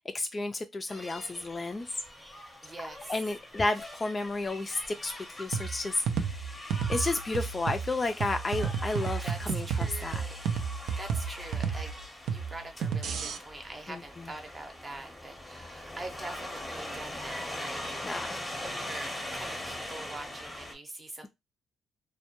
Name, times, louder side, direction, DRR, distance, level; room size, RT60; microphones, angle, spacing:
voice 1, 0.1-1.9 3.1-5.1 5.4-10.2 13.9-14.0 18.0-18.4, left 2 dB, 30° left, 0.3 m, -32 dB
sound 1, 0.9-20.7, left 1 dB, 10° left, 0.7 m, -42 dB
voice 2, 2.6-3.2 9.2-10.3 10.9-11.9 12.2-21.3, right 2 dB, 25° right, 0.7 m, -44 dB
sound 2, 5.5-13.4, right 6 dB, 75° right, 0.4 m, -32 dB
2.1 x 2.1 x 2.9 m
cardioid pair, 90°, 0 cm